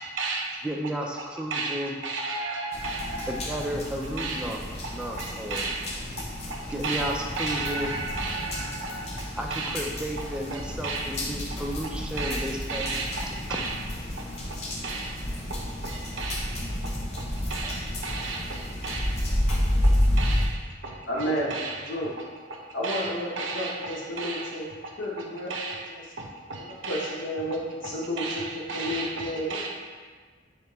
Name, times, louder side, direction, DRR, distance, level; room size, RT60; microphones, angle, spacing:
voice 1, 0.0-0.7 1.5-3.7 4.0-4.6 4.8-9.8 10.5-11.1 12.2-13.8 14.5-14.6 14.8-15.2 15.5-21.8 22.5-22.6 22.8-24.5 24.8-24.9 25.5-25.8 26.2-27.1 28.2-29.7, right 3 dB, 80° right, 1 dB, 0.6 m, -34 dB
voice 2, 0.6-1.9 3.3-4.6 4.9-5.6 6.7-7.9 9.4-12.9, right 1 dB, 5° right, 0 dB, 0.3 m, -33 dB
sound 1, 2.7-20.5, left 1 dB, 35° left, 0.6 m, -30 dB
voice 3, 21.1-21.5 21.9-22.1 22.7-24.6 25.0-25.5 25.9-26.0 26.6-28.4 28.7-29.6, equal, 80° left, -4 dB, 0.9 m, -31 dB
3.6 x 3.4 x 3.0 m, 1.5 s
head